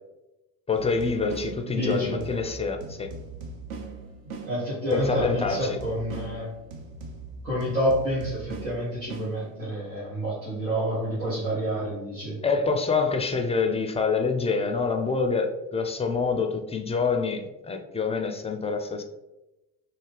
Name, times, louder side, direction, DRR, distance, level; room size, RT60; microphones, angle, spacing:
voice 1, 0.7-3.1 4.9-5.8 12.4-19.0, left 4 dB, 15° left, 4 dB, 0.3 m, -26 dB
sound 1, 0.7-9.9, right 3 dB, 65° right, 0.8 m, -40 dB
voice 2, 1.7-2.2 4.4-6.5 7.4-12.4, equal, 85° right, -10 dB, 1.3 m, -28 dB
3.2 x 2.8 x 3.2 m, 1.0 s
hypercardioid pair, 60°, 46 cm